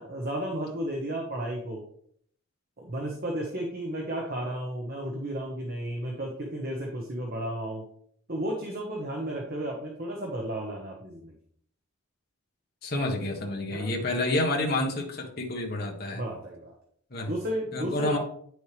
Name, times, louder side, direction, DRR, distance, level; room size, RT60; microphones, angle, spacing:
voice 1, 0.0-1.8 2.8-7.8 8.3-11.3 13.7-13.9 16.1-16.7 17.2-18.2, right 1 dB, 45° right, -1 dB, 1.2 m, -33 dB
voice 2, 12.8-16.2 17.1-17.3 17.7-18.2, left 2 dB, 45° left, 0 dB, 1.5 m, -29 dB
9.3 x 6.3 x 3.4 m, 0.64 s
head